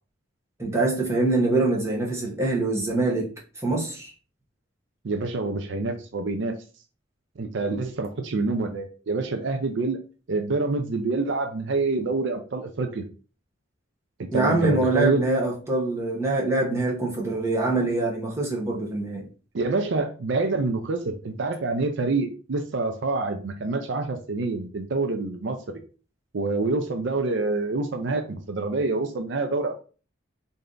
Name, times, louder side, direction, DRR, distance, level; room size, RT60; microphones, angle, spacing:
voice 1, 0.6-3.3 3.6-4.1 14.3-19.3, right 2 dB, 15° right, 0.9 m, -24 dB
voice 2, 5.0-6.5 7.4-10.0 10.3-13.1 14.2-15.2 19.5-25.8 26.3-29.8, right 3 dB, 65° right, 0.5 m, -27 dB
3.3 x 2.7 x 3.7 m
head